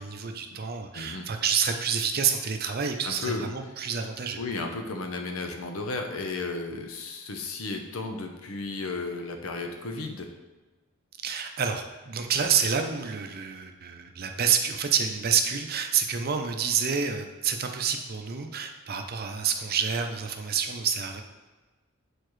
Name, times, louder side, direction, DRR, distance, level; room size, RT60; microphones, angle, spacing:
voice 1, 0.0-4.4 11.2-21.2, right 7 dB, 45° right, 5 dB, 0.6 m, -28 dB
voice 2, 0.9-1.3 3.0-3.4 4.4-10.3, left 3 dB, 70° left, 4 dB, 0.7 m, -34 dB
6.7 x 4.4 x 3.2 m, 1.3 s
head